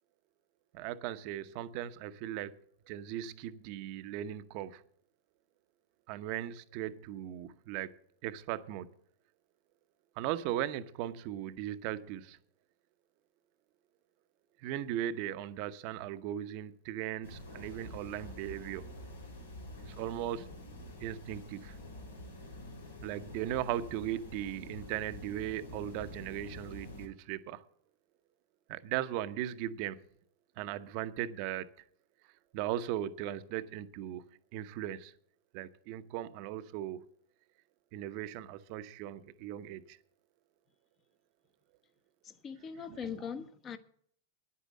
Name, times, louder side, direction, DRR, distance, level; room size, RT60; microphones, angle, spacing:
voice 1, 0.7-2.5 2.9-4.8 6.1-7.9 8.2-8.9 10.2-12.4 14.6-18.9 19.8-20.5 21.0-21.8 23.0-27.6 28.7-30.0 30.6-31.7 32.5-35.1 35.5-37.0 37.9-40.0 42.9-43.2, right 12 dB, 50° right, 0.8 m, -38 dB
sound 1, 17.2-27.1, left 1 dB, 90° left, 2.9 m, -47 dB
voice 2, 42.2-43.8, left 7 dB, 30° left, 1.1 m, -41 dB
10.0 x 8.5 x 7.6 m
hypercardioid pair, 105°, 0 cm